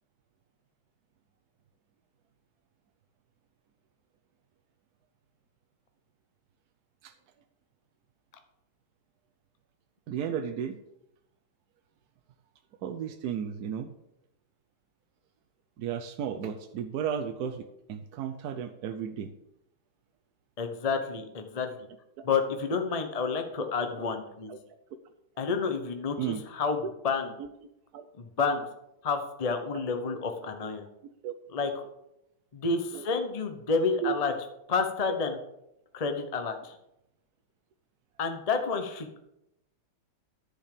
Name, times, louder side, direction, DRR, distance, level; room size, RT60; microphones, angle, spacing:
voice 1, 10.1-10.8 12.8-13.9 15.8-19.3 24.5-24.6 26.2-26.4 27.4-27.5 27.9-28.1 31.2-31.3 32.9-33.1 34.0-34.1, right 8 dB, 70° right, 7 dB, 0.9 m, -34 dB
voice 2, 20.6-21.7 22.2-24.5 25.4-27.3 28.2-28.6 29.0-30.9 31.5-31.7 32.5-34.3 34.7-35.4 35.9-36.8 38.2-39.3, left 4 dB, 50° left, 6 dB, 0.4 m, -30 dB
10.5 x 5.7 x 6.7 m, 0.83 s
omnidirectional pair, 2.4 m